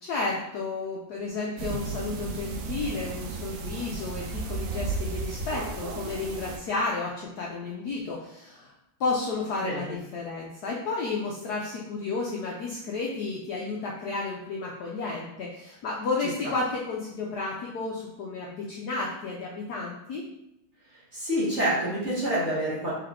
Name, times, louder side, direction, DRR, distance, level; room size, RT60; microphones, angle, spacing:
voice 1, 0.0-8.7 9.0-20.2, left 3 dB, 75° left, -2 dB, 0.9 m, -32 dB
sound 1, 1.6-6.6, right 4 dB, 70° right, 1.1 m, -34 dB
voice 2, 9.6-9.9 16.4-16.5 21.1-22.9, right 1 dB, 40° right, -7 dB, 1.2 m, -27 dB
3.8 x 3.5 x 3.6 m, 0.87 s
omnidirectional pair, 2.3 m